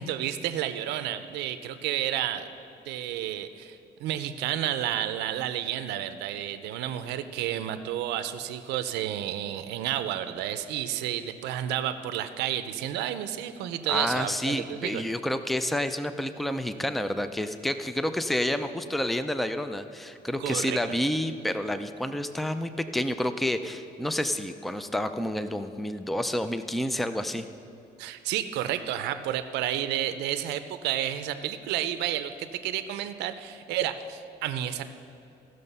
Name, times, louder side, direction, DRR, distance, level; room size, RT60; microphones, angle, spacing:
voice 1, 0.0-2.5 2.9-15.0 20.4-21.0 28.0-34.9, right 11 dB, 85° right, 11 dB, 0.6 m, -31 dB
voice 2, 13.9-27.4, left 1 dB, ahead, 10 dB, 0.4 m, -29 dB
15.5 x 6.5 x 5.5 m, 2.7 s
cardioid pair, 110°, 17 cm